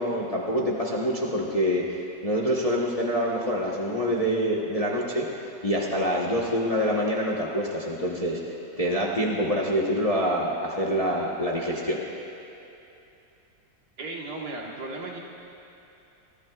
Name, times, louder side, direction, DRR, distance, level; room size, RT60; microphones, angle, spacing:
voice 1, 0.0-5.3 5.6-8.4 8.8-12.0, equal, 25° left, -4 dB, 1.0 m, -26 dB
voice 2, 14.0-15.2, right 2 dB, 65° right, -2 dB, 2.0 m, -35 dB
23.0 x 14.0 x 2.4 m, 2.8 s
omnidirectional pair, 1.9 m